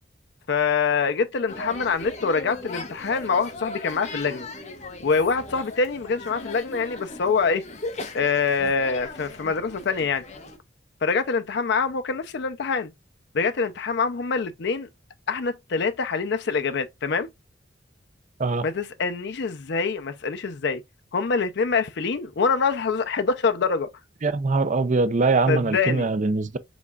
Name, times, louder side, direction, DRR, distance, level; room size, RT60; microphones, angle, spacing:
voice 1, 0.5-4.5 5.0-7.6 8.1-10.2 11.0-12.9 13.3-14.9 15.3-17.3 18.6-20.8 21.1-23.9 25.5-26.1, left 5 dB, 65° left, 0.5 m, -25 dB
sound 1, 1.5-10.6, left 2 dB, 40° left, 1.0 m, -38 dB
voice 2, 24.2-26.6, right 3 dB, 45° right, 0.5 m, -22 dB
5.2 x 3.5 x 2.3 m
head